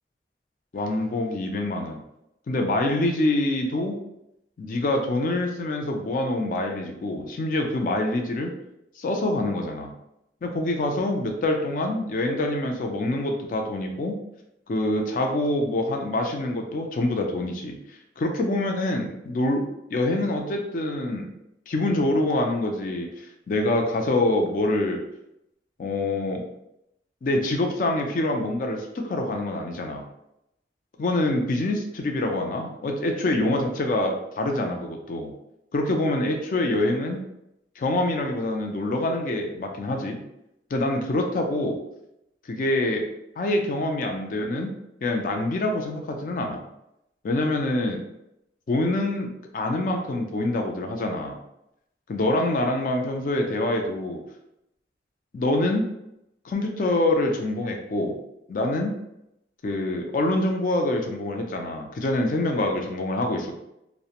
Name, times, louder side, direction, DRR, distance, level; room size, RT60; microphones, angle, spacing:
voice 1, 0.7-2.0 2.5-4.0 4.6-8.5 9.0-9.9 10.4-14.1 14.7-17.8 18.2-21.3 21.7-25.0 25.8-26.4 27.2-30.0 31.0-35.3 35.7-37.2 37.8-40.2 40.7-41.8 42.5-43.1 43.4-44.7 45.0-46.6 47.2-48.0 48.7-51.4 52.1-54.2 55.3-55.8 56.4-58.2 58.5-58.9 59.6-63.6, left 1 dB, 45° left, 3 dB, 0.3 m, -25 dB
2.4 x 2.1 x 2.8 m, 0.83 s
head